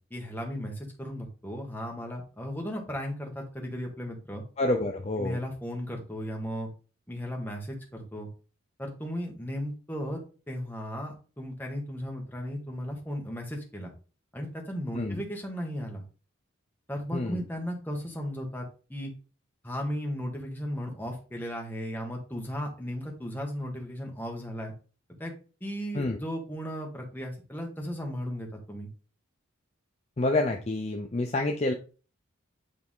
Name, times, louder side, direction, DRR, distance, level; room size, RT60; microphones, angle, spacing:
voice 1, 0.0-4.4 5.2-6.7 7.1-8.3 8.8-10.2 10.5-13.9 14.3-16.0 16.9-19.1 19.6-24.7 25.2-25.3 25.6-28.9, equal, 10° left, 0 dB, 1.4 m, -35 dB
voice 2, 4.6-5.4 14.9-15.2 17.1-17.4 25.9-26.2 30.2-31.7, left 2 dB, 30° left, 3 dB, 0.5 m, -28 dB
8.6 x 3.5 x 3.7 m, 0.36 s
head